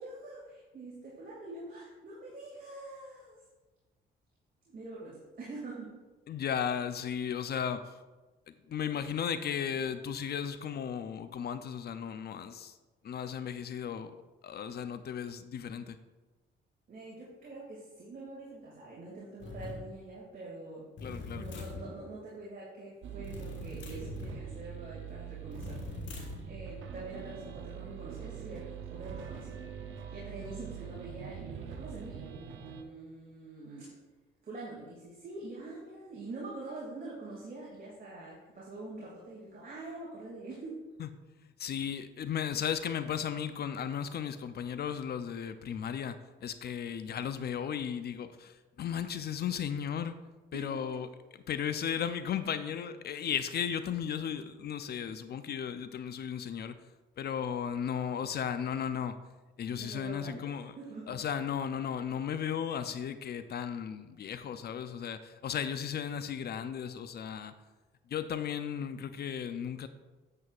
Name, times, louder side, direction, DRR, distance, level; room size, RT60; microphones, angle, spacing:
voice 1, 0.0-3.4 4.7-6.0 16.9-20.9 21.3-29.7 30.1-34.0 34.4-40.9 50.5-50.9 59.8-61.2, right 2 dB, 45° right, -5 dB, 2.2 m, -45 dB
voice 2, 6.3-8.0 8.5-12.8 13.0-14.1 14.4-16.0 21.0-21.7 41.0-41.1 41.4-50.2 50.5-56.8 57.2-59.2 59.6-60.8 61.1-67.5 68.1-69.9, left 8 dB, 55° left, 11 dB, 0.5 m, -35 dB
sound 1, 19.4-19.8 21.0-21.9 23.2-24.4 25.5-26.5, left 3 dB, 70° left, 1.7 m, -42 dB
sound 2, 23.0-32.8, right 9 dB, 80° right, 0.7 m, -44 dB
9.4 x 7.7 x 2.4 m, 1.2 s
cardioid pair, 90°, 20 cm